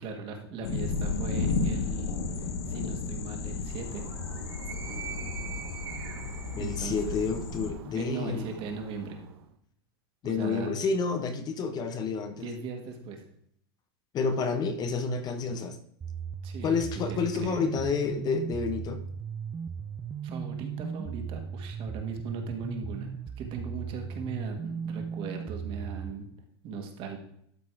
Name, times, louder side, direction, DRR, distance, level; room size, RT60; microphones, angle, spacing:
voice 1, 0.0-4.0 6.5-7.2 7.9-9.2 10.2-10.7 12.4-13.2 16.4-17.6 20.2-23.1 23.4-26.3 26.6-27.2, right 4 dB, 45° right, 4 dB, 1.9 m, -38 dB
sound 1, 0.6-7.7, left 4 dB, 80° left, 1.4 m, -33 dB
Animal, 3.6-9.5, right 8 dB, 80° right, 1.1 m, -43 dB
voice 2, 6.6-8.5 10.2-12.5 14.1-15.8 16.6-19.0, left 5 dB, 30° left, 8 dB, 0.9 m, -29 dB
sound 2, 16.0-26.1, right 7 dB, 20° right, 0.5 m, -37 dB
12.0 x 4.2 x 4.7 m, 0.68 s
supercardioid pair, 125°, 13 cm